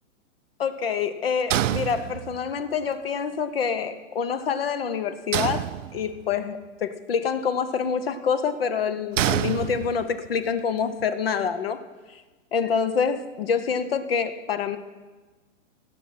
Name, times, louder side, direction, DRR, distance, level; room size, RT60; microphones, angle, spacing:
voice 1, 0.6-5.7 5.9-11.8 12.1-12.2 12.5-14.8, left 6 dB, 45° left, 12 dB, 0.6 m, -26 dB
sound 1, 1.5-2.6 5.3-6.4 9.2-10.3, right 12 dB, 70° right, 0.5 m, -27 dB
16.5 x 6.1 x 5.6 m, 1.3 s
hypercardioid pair, 180°, 40 cm